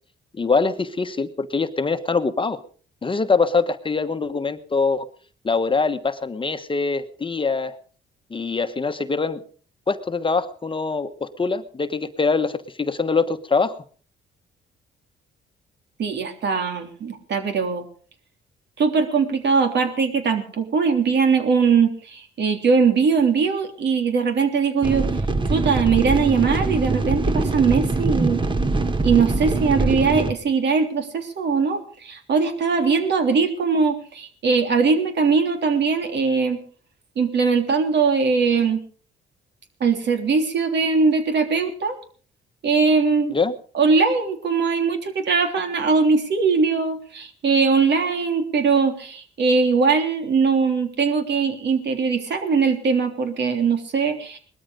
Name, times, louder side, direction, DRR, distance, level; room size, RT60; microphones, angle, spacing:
voice 1, 0.3-2.6 3.0-5.1 5.4-7.7 8.3-9.4 9.9-13.7 43.3-43.5, left 4 dB, 25° left, 9 dB, 1.2 m, -23 dB
voice 2, 16.0-17.9 18.8-25.1 25.5-28.4 29.0-36.6 37.1-38.8 39.8-42.0 42.6-43.3 43.7-54.4, right 5 dB, 60° right, 6 dB, 3.4 m, -21 dB
sound 1, 24.8-30.3, right 3 dB, 25° right, 1.6 m, -23 dB
19.5 x 13.5 x 5.2 m, 0.44 s
cardioid pair, 90°, 20 cm